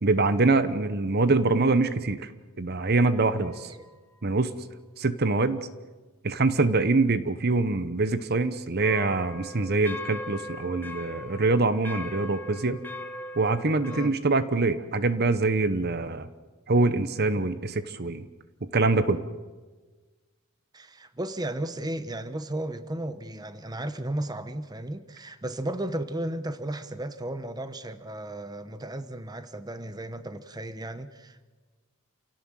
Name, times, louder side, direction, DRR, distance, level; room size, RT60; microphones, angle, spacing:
voice 1, 0.0-2.3 2.6-3.7 4.2-4.5 5.0-5.7 6.2-12.8 13.4-16.3 16.7-18.3 18.6-19.2, right 3 dB, 45° right, 12 dB, 0.9 m, -24 dB
sound 1, 3.4-4.0 8.8-14.1, left 2 dB, 10° left, 1.2 m, -40 dB
voice 2, 13.9-14.2 20.7-31.4, right 1 dB, 20° right, 10 dB, 1.0 m, -34 dB
28.5 x 17.5 x 7.6 m, 1.4 s
head